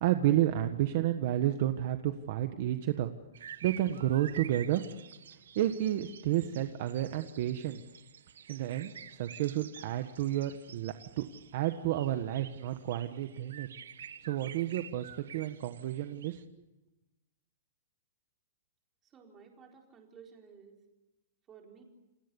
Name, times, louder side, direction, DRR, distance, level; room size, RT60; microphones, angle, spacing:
voice 1, 0.0-3.1 3.6-4.8 5.5-7.8 8.5-11.2 11.5-13.7 14.2-16.4, right 13 dB, 40° right, 8 dB, 1.4 m, -31 dB
sound 1, 3.3-16.4, right 8 dB, 80° right, 1.7 m, -50 dB
voice 2, 19.0-20.7 21.5-21.8, right 6 dB, 15° right, 1 dB, 4.3 m, -54 dB
29.0 x 28.0 x 7.1 m, 1.0 s
hypercardioid pair, 175°, 0 cm